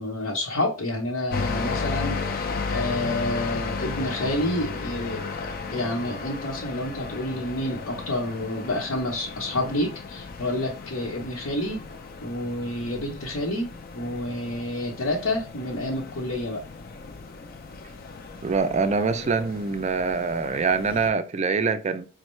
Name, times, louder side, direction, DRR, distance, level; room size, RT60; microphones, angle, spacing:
voice 1, 0.0-11.8 12.2-13.7 13.9-16.6, left 1 dB, 80° left, 0.9 m, -29 dB
sound 1, 1.3-21.1, left 4 dB, 45° left, 0.4 m, -35 dB
voice 2, 18.4-22.1, right 4 dB, 30° right, 0.4 m, -24 dB
5.2 x 2.1 x 3.1 m
head